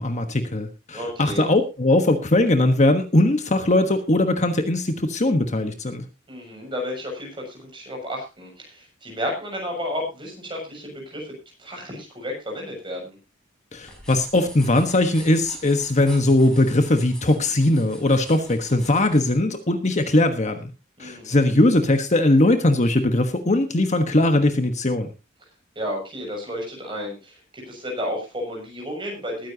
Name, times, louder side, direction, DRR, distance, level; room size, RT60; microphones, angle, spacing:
voice 1, 0.0-6.0 13.7-20.7 21.0-25.1, left 1 dB, 35° left, 7 dB, 1.3 m, -20 dB
voice 2, 0.9-1.5 6.3-13.2 21.0-21.5 25.7-29.5, equal, 25° right, 0 dB, 6.6 m, -32 dB
sound 1, 13.8-19.4, equal, 5° left, 5.3 m, -44 dB
20.5 x 10.0 x 2.8 m, 0.28 s
head